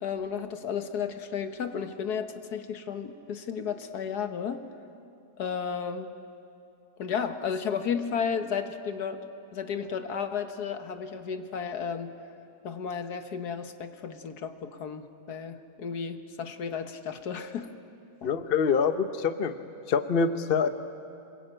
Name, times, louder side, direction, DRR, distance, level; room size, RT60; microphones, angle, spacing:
voice 1, 0.0-4.6 5.4-6.1 7.0-9.2 9.5-12.1 12.6-17.7 18.2-18.3, left 6 dB, 65° left, 8 dB, 1.6 m, -33 dB
voice 2, 18.2-19.5 19.9-20.7, left 5 dB, 45° left, 9 dB, 0.8 m, -25 dB
25.5 x 21.5 x 9.0 m, 2.7 s
omnidirectional pair, 1.9 m